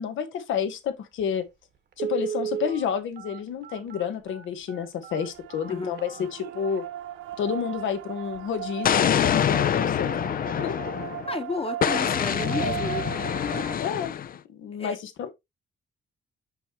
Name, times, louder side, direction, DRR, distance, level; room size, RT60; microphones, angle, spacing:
voice 1, 0.0-1.5 2.0-6.9 7.4-10.2 10.6-10.7 12.6-12.7 13.8-14.1 14.5-15.3, left 7 dB, 75° left, 1.2 m, -30 dB
Telephone, 1.2-1.3 1.9-6.8 7.3-7.4 7.8-8.0 8.3-8.6 8.9-9.0, right 8 dB, 60° right, 1.3 m, -35 dB
sound 1, 5.2-13.8, right 12 dB, 85° right, 0.5 m, -37 dB
Explosion, 8.8-11.3 11.8-14.4, left 9 dB, 45° left, 0.5 m, -25 dB
voice 2, 11.3-13.1 14.8-15.0, left 3 dB, 30° left, 1.2 m, -32 dB
5.9 x 5.5 x 3.0 m
cardioid pair, 90°, 20 cm